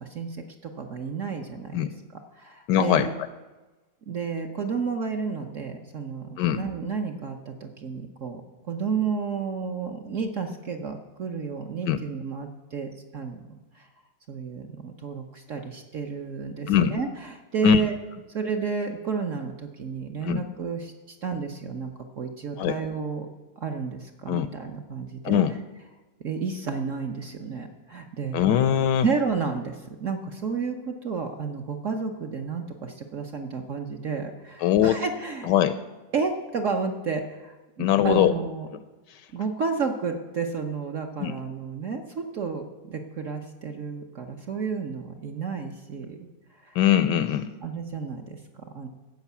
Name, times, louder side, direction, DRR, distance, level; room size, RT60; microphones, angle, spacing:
voice 1, 0.0-0.4 0.6-3.1 4.1-8.4 8.7-13.4 13.7-13.9 14.3-17.9 18.3-23.3 23.6-25.4 26.2-28.6 29.0-35.5 36.1-38.7 39.3-46.2 46.6-46.8 47.6-48.9, right 5 dB, 55° right, 4 dB, 1.0 m, -31 dB
voice 2, 2.7-3.1 6.4-6.6 11.9-12.0 16.7-16.9 17.6-17.8 20.2-20.4 22.6-22.8 24.3-24.5 25.2-25.5 28.3-29.1 34.6-35.0 35.5-35.7 37.8-38.3 41.2-41.3 46.8-47.5, left 11 dB, 75° left, 13 dB, 1.1 m, -21 dB
14.5 x 5.4 x 8.3 m, 1.2 s
omnidirectional pair, 2.1 m